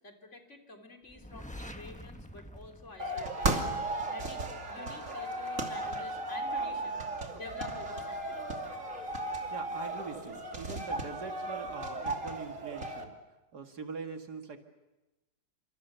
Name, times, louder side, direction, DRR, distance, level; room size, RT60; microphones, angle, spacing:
voice 1, 0.0-3.7 4.1-8.6, left 3 dB, 45° left, 3 dB, 3.9 m, -49 dB
sound 1, 1.1-3.9, left 1 dB, 5° left, 1.1 m, -47 dB
sound 2, 3.0-13.0, right 2 dB, 50° right, 3.1 m, -35 dB
voice 2, 9.5-13.2 13.5-14.6, right 4 dB, 80° right, 5 dB, 2.5 m, -42 dB
30.0 x 27.0 x 7.0 m, 1.1 s
omnidirectional pair, 1.7 m